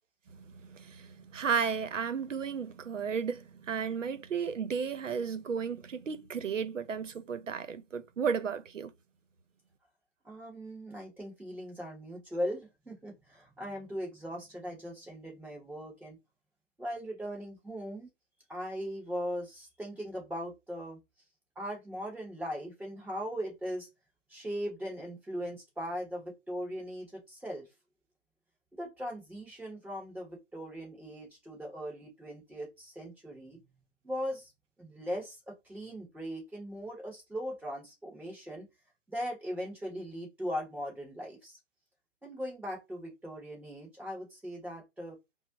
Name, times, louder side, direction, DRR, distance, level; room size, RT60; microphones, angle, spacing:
voice 1, 0.7-1.1 1.3-8.9, right 6 dB, 75° right, 0.7 m, -33 dB
voice 2, 10.2-16.2 16.8-18.1 18.5-21.0 21.6-23.9 24.3-27.7 28.7-33.6 34.0-34.5 34.8-38.7 39.1-41.6 42.2-45.2, equal, ahead, 1.8 m, -39 dB
5.0 x 2.1 x 3.1 m
hypercardioid pair, 175°, 38 cm